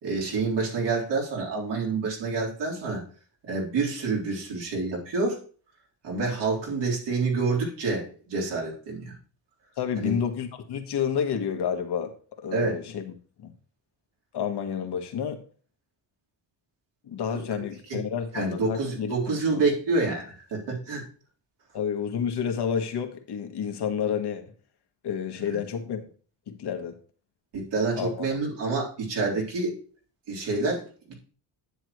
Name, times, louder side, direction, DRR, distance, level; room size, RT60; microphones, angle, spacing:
voice 1, 0.0-3.0 3.4-5.4 6.0-9.1 10.0-10.1 12.5-12.8 17.9-18.0 18.3-21.0 25.5-25.6 27.5-29.7 30.3-31.1, right 3 dB, 80° right, -4 dB, 3.9 m, -28 dB
voice 2, 9.8-12.1 12.4-13.5 14.3-15.4 17.0-19.6 21.7-24.5 25.0-26.0 26.5-27.0 27.9-28.3, left 7 dB, 70° left, 5 dB, 1.6 m, -30 dB
10.0 x 8.0 x 3.1 m, 0.41 s
cardioid pair, 85°, 42 cm